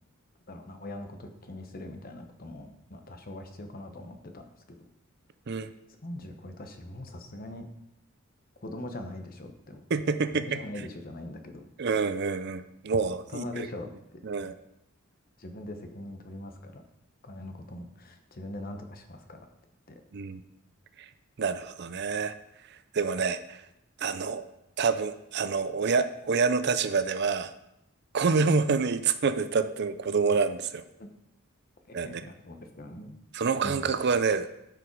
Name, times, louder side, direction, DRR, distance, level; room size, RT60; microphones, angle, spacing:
voice 1, 0.5-4.4 6.0-7.6 8.6-9.8 10.3-11.6 13.3-14.5 15.4-16.8 17.2-19.4 31.0-31.1 31.9-33.8, left 1 dB, 45° left, 6 dB, 1.0 m, -42 dB
voice 2, 9.9-10.6 11.8-13.7 14.2-14.5 20.1-20.4 21.4-22.3 22.9-23.6 24.0-24.4 24.8-27.5 28.1-30.8 31.9-32.3 33.3-34.5, right 5 dB, 55° right, 11 dB, 0.5 m, -27 dB
12.0 x 5.0 x 4.6 m, 0.85 s
head